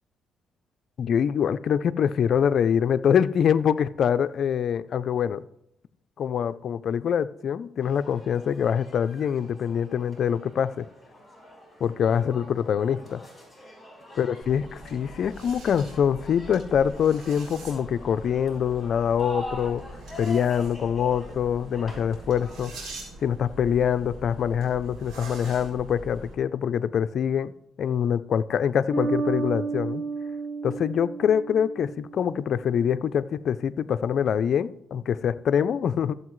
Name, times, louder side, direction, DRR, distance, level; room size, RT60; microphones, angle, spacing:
voice 1, 1.0-5.4 6.2-10.9 11.8-13.2 14.2-19.8 20.2-22.9 23.2-27.5 27.8-30.0 30.6-36.1, left 8 dB, 60° left, 13 dB, 0.4 m, -24 dB
sound 1, 7.8-22.8, equal, 5° left, 4.6 m, -44 dB
sound 2, 14.4-26.3, right 1 dB, 80° right, 3.6 m, -43 dB
Bass guitar, 28.9-32.5, right 4 dB, 15° right, 2.9 m, -31 dB
14.5 x 7.7 x 3.1 m, 0.76 s
cardioid pair, 90°, 0 cm